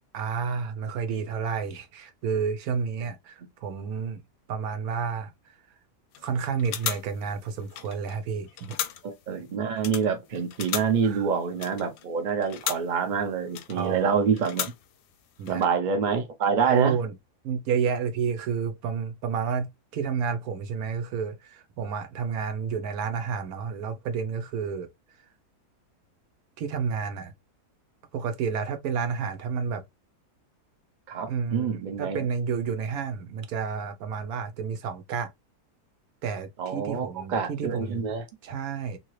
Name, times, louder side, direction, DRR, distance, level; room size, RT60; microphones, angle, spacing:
voice 1, 0.1-4.2 4.5-5.3 6.2-8.7 11.0-11.3 13.7-14.1 15.4-15.6 16.7-17.1 17.4-24.9 26.6-27.3 28.1-29.8 31.3-35.3 36.2-38.1 38.4-39.0, right 6 dB, 70° right, 1.1 m, -30 dB
sound 1, 6.1-6.3 6.6-8.2 8.5-9.3 9.7-13.0 13.5-14.0 14.3-15.1 15.4-15.7, left 10 dB, 85° left, 1.1 m, -36 dB
voice 2, 9.0-14.7 15.5-17.0 31.1-32.2 36.6-38.2, right 6 dB, 50° right, 0.5 m, -27 dB
2.8 x 2.8 x 3.0 m
omnidirectional pair, 1.7 m